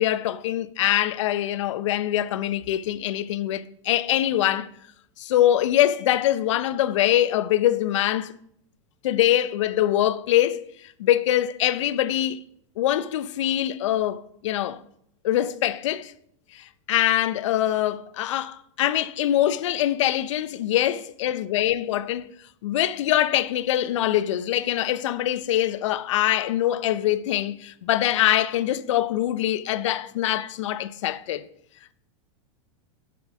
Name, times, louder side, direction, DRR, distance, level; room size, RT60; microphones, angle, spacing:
voice 1, 0.0-4.7 5.2-8.3 9.0-12.4 12.8-14.8 15.2-16.1 16.5-22.3 22.6-31.4, left 12 dB, 70° left, 0.6 m, -23 dB
7.0 x 6.2 x 5.9 m
supercardioid pair, 170°, 16 cm